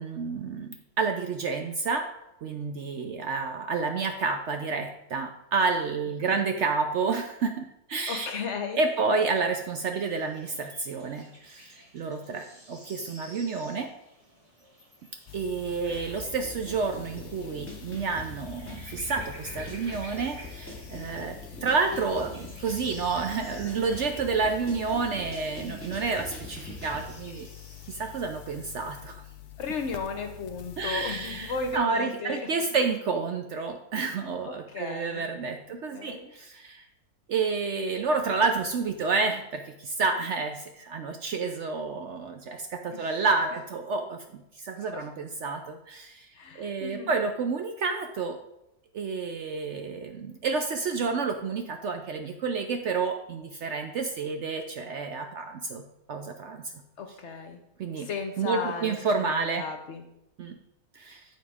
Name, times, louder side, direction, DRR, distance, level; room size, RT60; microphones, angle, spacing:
voice 1, 0.0-2.1 2.4-8.3 8.7-13.9 15.3-27.5 27.9-29.2 30.8-36.8 37.3-46.3 46.6-48.4 48.9-55.8 56.1-56.6 57.8-58.1 58.4-59.6 60.4-60.6 60.9-61.2, right 4 dB, 65° right, 5 dB, 0.8 m, -30 dB
voice 2, 8.1-8.8 29.6-32.5 34.4-35.3 35.9-36.3 42.9-43.2 44.8-45.1 46.3-47.1 57.0-57.6 58.0-60.0, left 4 dB, 55° left, 6 dB, 0.9 m, -35 dB
sound 1, 9.9-28.2, equal, 25° right, 2.0 m, -52 dB
sound 2, 15.3-31.8, left 12 dB, 75° left, 0.5 m, -46 dB
sound 3, 15.8-27.0, left 1 dB, 10° left, 2.1 m, -43 dB
9.1 x 4.2 x 4.8 m, 0.85 s
omnidirectional pair, 1.6 m